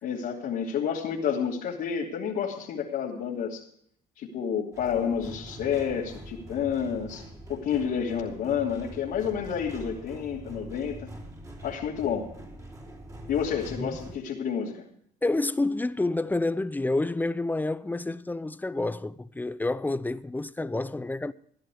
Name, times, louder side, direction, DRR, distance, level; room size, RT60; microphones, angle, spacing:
voice 1, 0.0-3.6 4.2-7.2 7.5-11.1 11.6-12.3 13.3-14.9, left 7 dB, 70° left, 3.0 m, -30 dB
sound 1, 4.7-14.2, right 1 dB, 20° right, 3.6 m, -44 dB
voice 2, 15.2-21.3, left 2 dB, 10° left, 0.6 m, -29 dB
16.0 x 11.0 x 5.0 m
cardioid pair, 110°, 17 cm